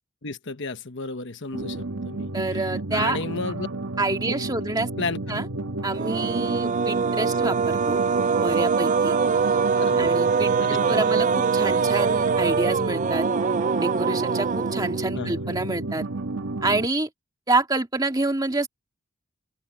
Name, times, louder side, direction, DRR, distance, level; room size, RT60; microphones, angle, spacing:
voice 1, 0.2-2.3 2.6-3.7 5.0-5.4 9.7-10.1 10.6-11.1 15.1-15.3, left 3 dB, 55° left, 1.2 m, -33 dB
sound 1, 1.5-16.9, right 2 dB, 65° right, 1.5 m, -32 dB
voice 2, 2.3-3.2 4.0-4.9 5.3-5.5 5.8-8.0 8.3-9.2 10.0-13.3 13.8-16.1 16.6-17.1 17.5-18.7, right 2 dB, 20° right, 2.0 m, -27 dB
sound 2, 5.9-15.3, right 5 dB, 35° right, 0.4 m, -23 dB
open air
head